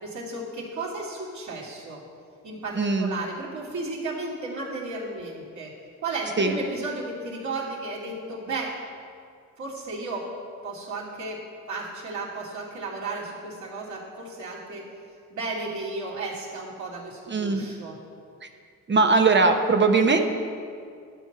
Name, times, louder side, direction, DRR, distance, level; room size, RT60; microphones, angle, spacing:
voice 1, 0.0-2.0 2.4-5.7 6.0-8.7 9.6-10.3 10.6-11.4 11.7-14.8 15.3-18.0, right 3 dB, 55° right, -5 dB, 2.9 m, -34 dB
voice 2, 2.8-3.1 6.4-6.6 17.3-17.7 18.9-20.2, right 4 dB, 35° right, 5 dB, 0.9 m, -20 dB
12.0 x 4.5 x 7.9 m, 2.2 s
cardioid pair, 80°, 34 cm